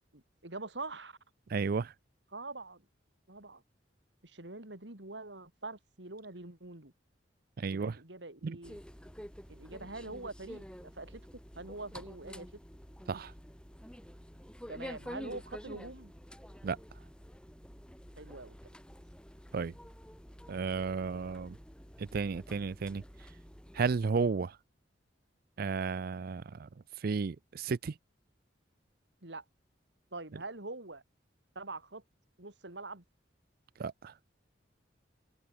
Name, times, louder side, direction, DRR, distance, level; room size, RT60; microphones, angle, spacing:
voice 1, 0.1-1.2 2.3-2.8 3.3-3.6 4.2-6.9 7.7-8.8 9.5-11.2 11.6-12.5 14.7-16.1 18.2-18.5 29.2-29.4 30.1-31.0 31.6-32.0 32.4-33.0, right 2 dB, 75° right, 3.8 m, -44 dB
voice 2, 1.5-1.9 7.6-8.0 8.4-8.6 13.1-13.3 16.6-16.8 19.5-19.7 20.5-21.6 22.0-23.0 23.7-24.6 25.6-26.7 27.0-28.0 30.3-30.4 33.8-34.1, right 5 dB, 55° right, 0.4 m, -33 dB
sound 1, 8.6-24.1, equal, 5° left, 5.5 m, -49 dB
head